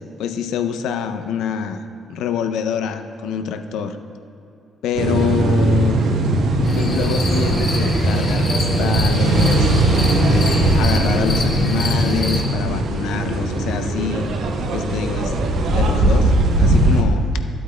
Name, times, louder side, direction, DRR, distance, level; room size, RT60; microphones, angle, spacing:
voice 1, 0.2-1.8 2.1-4.0 4.8-6.0 6.8-9.7 10.3-14.3 14.7-15.3 15.7-17.3, left 7 dB, 85° left, 8 dB, 0.4 m, -25 dB
sound 1, 4.9-17.0, right 2 dB, 75° right, 0.8 m, -19 dB
sound 2, 6.6-12.4, left 1 dB, 50° left, 2.0 m, -25 dB
12.5 x 8.4 x 2.2 m, 2.7 s
cardioid pair, 90°, 0 cm